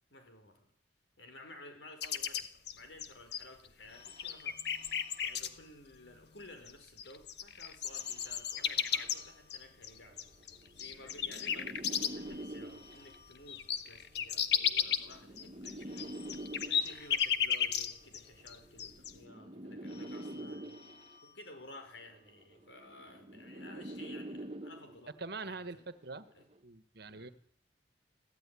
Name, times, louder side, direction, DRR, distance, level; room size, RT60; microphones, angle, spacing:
voice 1, 0.1-0.7 1.2-4.8 5.2-10.3 10.7-20.8 21.2-25.1 25.4-25.9 26.3-26.4 27.1-27.3, left 2 dB, 90° left, 6 dB, 5.3 m, -54 dB
sound 1, 2.0-3.7 4.0-5.5 6.7-6.8 7.0-12.3 12.7-12.8 13.1-18.2 18.5-19.1, left 8 dB, 65° left, 1.4 m, -34 dB
Telephone, 3.9-6.4 7.9-10.3 11.9-14.3 15.8-18.3 19.8-22.3, left 4 dB, 35° left, 4.2 m, -59 dB
sound 2, 8.9-9.1 10.0-13.1 14.2-17.1 18.2-21.1 22.2-25.1 26.2-26.5, right 1 dB, 35° right, 1.5 m, -45 dB
voice 2, 25.2-26.3 26.6-27.3, right 3 dB, 65° right, 12 dB, 1.5 m, -43 dB
22.5 x 15.0 x 9.9 m, 0.67 s
head